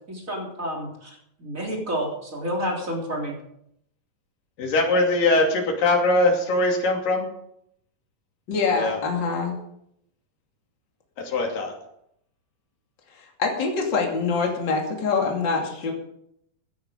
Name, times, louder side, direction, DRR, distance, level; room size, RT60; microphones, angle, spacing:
voice 1, 0.1-3.4, equal, 25° right, -1 dB, 3.6 m, -30 dB
voice 2, 4.6-7.3 8.8-9.0 11.2-11.7, left 2 dB, 70° left, 1 dB, 4.2 m, -21 dB
voice 3, 8.5-9.6 13.4-15.9, left 4 dB, 35° left, 0 dB, 3.0 m, -24 dB
16.5 x 10.0 x 5.2 m, 0.74 s
omnidirectional pair, 4.0 m